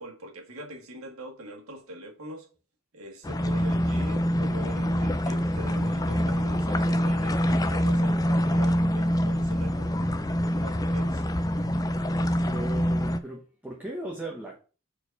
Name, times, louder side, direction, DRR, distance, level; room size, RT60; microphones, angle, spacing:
voice 1, 0.0-2.5 2.9-10.0 10.6-11.2, equal, 75° right, 1.8 m, -42 dB
sound 1, 3.2-13.2, equal, 15° left, 0.4 m, -25 dB
voice 2, 12.5-14.6, right 1 dB, 5° right, 1.0 m, -37 dB
4.6 x 4.4 x 5.4 m
head